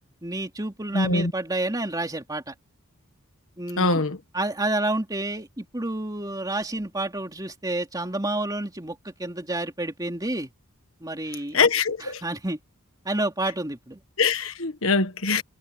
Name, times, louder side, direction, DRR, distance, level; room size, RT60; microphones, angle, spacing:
voice 1, 0.2-2.5 3.6-4.0 4.3-10.5 11.0-11.6 12.0-12.6 13.0-14.0, right 2 dB, 15° right, 3.0 m, -29 dB
voice 2, 0.9-1.3 3.8-4.2 11.5-12.2 14.2-15.4, left 4 dB, 65° left, 1.6 m, -23 dB
head